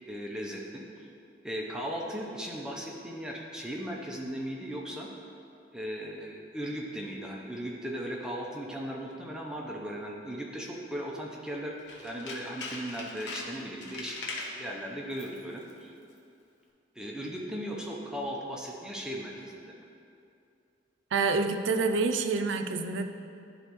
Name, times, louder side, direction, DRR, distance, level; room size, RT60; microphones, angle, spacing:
voice 1, 0.1-1.1 1.4-5.1 5.7-15.9 17.0-19.9, equal, 5° right, -2 dB, 0.6 m, -37 dB
Tools, 11.8-14.6 15.1-15.4 15.7-15.8, left 3 dB, 80° left, 0.9 m, -40 dB
voice 2, 21.1-23.1, right 4 dB, 90° right, 7 dB, 0.4 m, -27 dB
10.5 x 4.0 x 3.0 m, 2.5 s
head